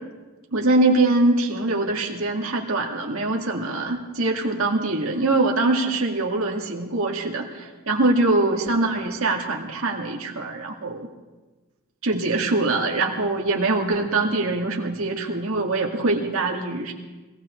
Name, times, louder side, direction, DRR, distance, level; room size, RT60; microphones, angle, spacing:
voice 1, 0.5-11.1 12.0-16.9, right 2 dB, 70° right, 0 dB, 2.1 m, -23 dB
25.0 x 18.0 x 3.2 m, 1.2 s
head